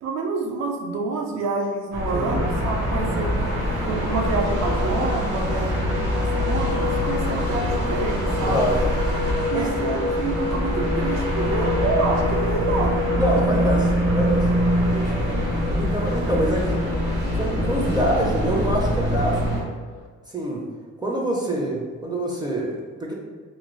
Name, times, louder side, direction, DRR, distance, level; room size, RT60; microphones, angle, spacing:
voice 1, 0.0-3.6 3.8-8.7 9.5-13.7 14.0-14.1, right 3 dB, 60° right, 1 dB, 0.5 m, -28 dB
sound 1, 1.9-19.6, equal, 80° right, 1.0 m, -24 dB
voice 2, 2.1-2.4 8.5-8.8 9.5-9.7 13.1-14.5 14.8-16.8 17.3-19.4 20.3-20.7 21.0-23.1, right 1 dB, 15° right, -2 dB, 0.5 m, -26 dB
sound 2, 2.5-20.1, left 5 dB, 80° left, 0.5 m, -32 dB
2.6 x 2.2 x 3.0 m, 1.5 s
cardioid pair, 90°, 30 cm